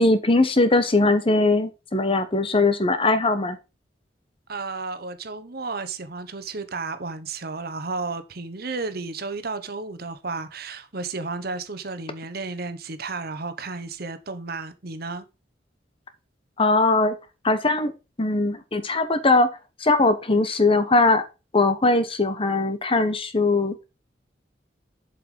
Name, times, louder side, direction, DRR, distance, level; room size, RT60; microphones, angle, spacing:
voice 1, 0.0-3.6 16.6-17.1 17.4-17.9 18.2-19.5 19.8-21.2 21.5-23.7, left 2 dB, 30° left, 1.1 m, -20 dB
voice 2, 4.5-15.3, right 3 dB, 60° right, 1.2 m, -33 dB
7.5 x 5.6 x 5.1 m
head